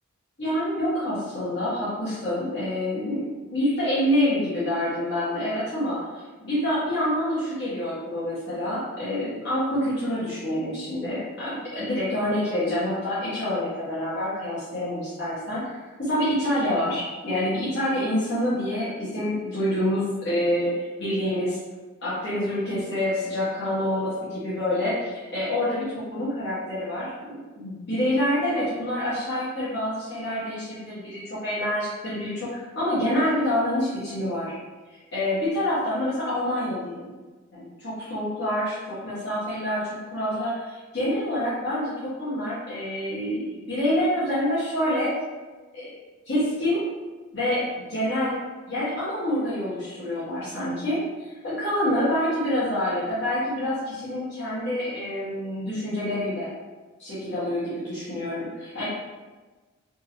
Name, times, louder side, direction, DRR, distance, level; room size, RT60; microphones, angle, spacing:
voice 1, 0.4-21.6 22.0-34.5 34.9-37.1 37.5-40.5 40.9-45.1 45.7-45.9 46.3-46.8 47.3-48.4 48.7-56.5 57.0-58.9, left 1 dB, 55° left, -12 dB, 1.1 m, -27 dB
3.6 x 2.7 x 2.9 m, 1.3 s
head